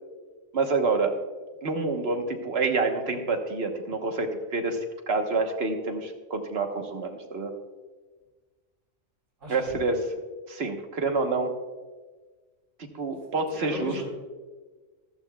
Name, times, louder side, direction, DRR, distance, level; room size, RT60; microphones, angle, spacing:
voice 1, 0.5-1.1 1.6-7.5 9.5-10.0 10.5-11.5 13.0-14.1, right 3 dB, 55° right, 4 dB, 1.4 m, -27 dB
voice 2, 9.4-9.8 13.5-14.1, equal, 70° right, -5 dB, 4.3 m, -36 dB
14.5 x 14.0 x 2.3 m, 1.4 s
omnidirectional pair, 1.4 m